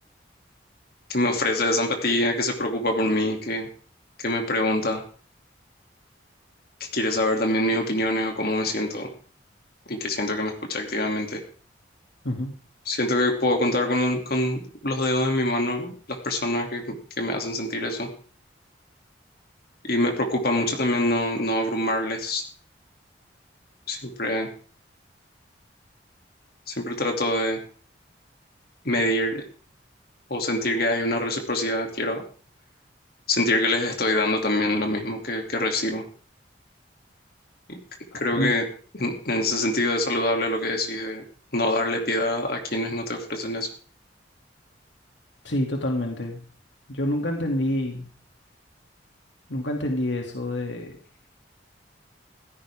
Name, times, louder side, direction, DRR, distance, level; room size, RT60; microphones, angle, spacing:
voice 1, 1.1-3.7 4.2-5.0 6.8-9.1 9.9-11.4 12.9-18.1 19.8-22.4 23.9-24.5 26.7-27.6 28.8-29.4 30.3-32.2 33.3-36.0 37.7-37.8 38.1-38.6 39.0-41.2 41.5-43.7, left 1 dB, 55° left, 3 dB, 2.7 m, -25 dB
voice 2, 38.1-38.5 45.4-46.4 46.9-48.1 49.5-51.0, left 1 dB, 80° left, 1 dB, 2.6 m, -27 dB
16.5 x 15.5 x 3.6 m, 0.42 s
head